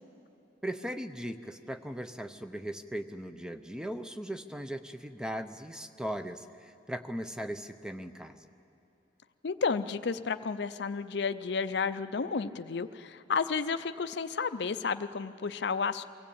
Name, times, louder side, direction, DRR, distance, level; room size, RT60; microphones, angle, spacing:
voice 1, 0.6-8.4, equal, 5° right, 9 dB, 0.6 m, -38 dB
voice 2, 9.4-16.0, left 5 dB, 65° left, 11 dB, 0.5 m, -32 dB
23.0 x 16.0 x 8.6 m, 2.7 s
head